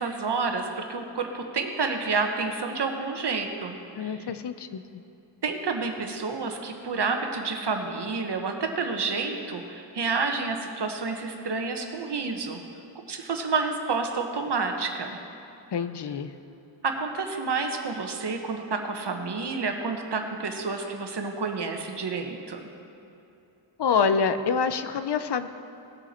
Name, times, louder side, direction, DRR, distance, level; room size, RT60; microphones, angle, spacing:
voice 1, 0.0-4.1 5.4-12.6 13.1-15.2 16.8-22.6, right 4 dB, 60° right, 4 dB, 1.3 m, -29 dB
voice 2, 4.0-4.8 15.7-16.3 23.8-25.5, left 6 dB, 60° left, 10 dB, 0.7 m, -26 dB
18.5 x 7.1 x 4.4 m, 2.9 s
cardioid pair, 75°, 46 cm